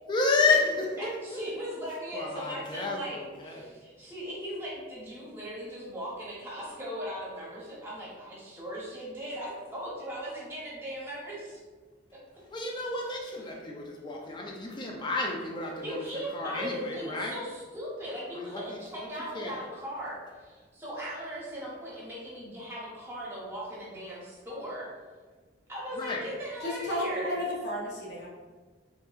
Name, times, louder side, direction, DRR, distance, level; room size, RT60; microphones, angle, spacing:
voice 1, 0.1-1.4 2.1-3.8 12.5-16.0 16.3-17.4 18.3-19.1 19.3-19.6 26.0-26.2, left 3 dB, 25° left, -1 dB, 0.4 m, -31 dB
voice 2, 1.0-3.2 3.4-11.6 15.8-24.9 25.7-27.4, equal, 15° right, -7 dB, 0.9 m, -38 dB
voice 3, 26.6-28.3, equal, 60° left, -4 dB, 0.8 m, -32 dB
3.5 x 2.8 x 2.4 m, 1.4 s
head